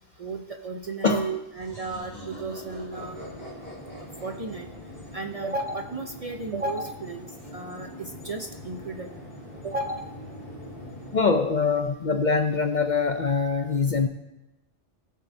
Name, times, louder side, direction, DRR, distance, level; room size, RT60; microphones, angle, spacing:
voice 1, 0.2-3.2 4.2-4.7 5.1-9.1 9.6-10.1, right 3 dB, 40° right, 4 dB, 0.6 m, -33 dB
sound 1, 1.5-6.1, equal, 10° left, 4.4 m, -44 dB
sound 2, 2.9-11.2, left 1 dB, 35° left, 2.4 m, -43 dB
voice 2, 11.1-14.1, left 4 dB, 50° left, 6 dB, 0.6 m, -23 dB
19.0 x 7.5 x 2.7 m, 0.96 s
omnidirectional pair, 1.2 m